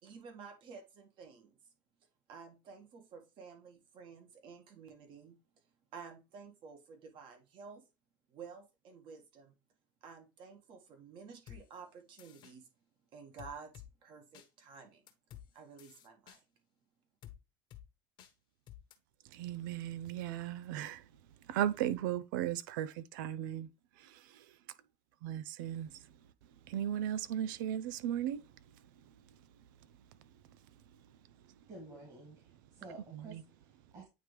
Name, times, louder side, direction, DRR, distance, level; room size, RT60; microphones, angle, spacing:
voice 1, 0.0-1.6 2.3-5.4 5.9-7.8 8.3-9.5 10.0-12.7 13.1-15.0 15.5-16.4, right 5 dB, 50° right, 1.8 m, -52 dB
sound 1, 11.5-11.6 12.2-12.5 13.4-13.9 14.3-14.5 15.1-15.5 15.8-16.4 17.2-17.4 17.7-17.8 18.2-18.3 18.7-18.9, left 11 dB, 50° left, 1.1 m, -51 dB
voice 2, 19.3-21.0 21.5-23.7 24.0-24.4 25.2-25.9 26.7-28.4 33.1-33.4, right 11 dB, 85° right, 0.5 m, -36 dB
voice 3, 31.7-34.0, right 2 dB, 35° right, 2.4 m, -52 dB
9.1 x 3.1 x 3.3 m
supercardioid pair, 120°, 11 cm